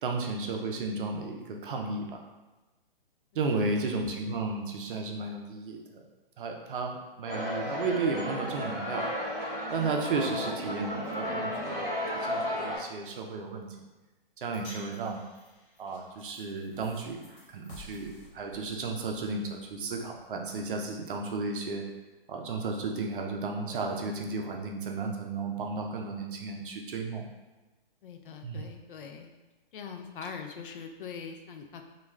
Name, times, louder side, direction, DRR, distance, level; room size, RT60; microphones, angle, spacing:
voice 1, 0.0-2.2 3.3-6.0 6.4-9.1 9.7-13.7 14.4-15.2 15.8-17.2 17.5-21.8 22.3-27.3 28.4-28.6, right 3 dB, 65° right, 2 dB, 0.6 m, -33 dB
voice 2, 3.3-3.8 28.0-29.3 29.7-31.8, left 6 dB, 65° left, 5 dB, 0.4 m, -42 dB
sound 1, 7.3-12.8, left 1 dB, 10° right, 0.6 m, -33 dB
sound 2, 14.5-20.9, left 2 dB, 45° left, 1.2 m, -53 dB
2.3 x 2.3 x 3.1 m, 1.2 s
hypercardioid pair, 145°, 29 cm